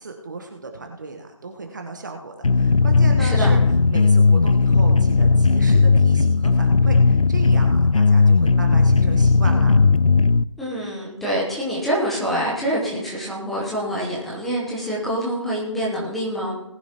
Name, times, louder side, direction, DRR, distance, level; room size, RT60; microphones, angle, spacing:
voice 1, 0.0-3.6 3.9-9.8, right 3 dB, 35° right, 3 dB, 1.2 m, -35 dB
sound 1, 2.4-10.4, left 4 dB, 90° left, 0.5 m, -16 dB
voice 2, 3.2-3.5 10.6-16.6, equal, ahead, -6 dB, 0.9 m, -26 dB
19.0 x 10.5 x 2.9 m, 0.90 s
figure-of-eight pair, 160°, 17 cm